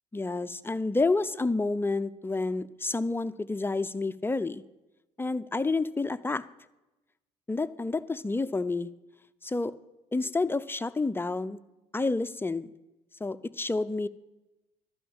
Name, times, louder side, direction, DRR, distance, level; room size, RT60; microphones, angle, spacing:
voice 1, 0.1-4.6 5.2-6.4 7.5-8.9 9.4-9.7 10.1-11.6 11.9-12.7 13.2-14.1, left 3 dB, 10° left, 13 dB, 0.5 m, -29 dB
12.0 x 5.7 x 8.6 m, 1.0 s
hypercardioid pair, 55°, 20 cm